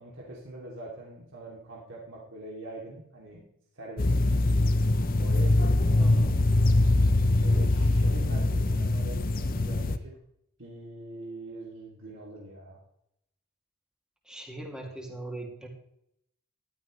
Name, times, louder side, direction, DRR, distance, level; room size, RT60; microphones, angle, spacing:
voice 1, 0.0-3.5 3.7-4.1 5.2-6.9 7.3-10.1 10.6-12.8, right 2 dB, 60° right, -4 dB, 2.9 m, -43 dB
sound 1, 4.0-10.0, left 2 dB, 40° left, 0.7 m, -23 dB
voice 2, 6.0-6.3 14.3-15.7, right 1 dB, 5° right, 0 dB, 2.6 m, -40 dB
14.5 x 12.5 x 3.3 m, 0.76 s
head